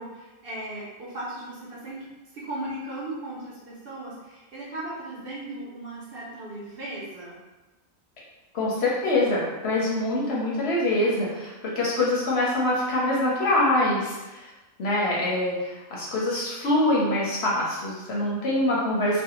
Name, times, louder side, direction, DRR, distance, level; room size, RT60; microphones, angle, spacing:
voice 1, 0.0-2.1 2.3-7.4, right 1 dB, 55° right, -7 dB, 0.7 m, -37 dB
voice 2, 8.5-14.5 14.8-19.2, left 1 dB, 65° left, -5 dB, 0.8 m, -24 dB
2.5 x 2.1 x 2.8 m, 1.1 s
omnidirectional pair, 1.3 m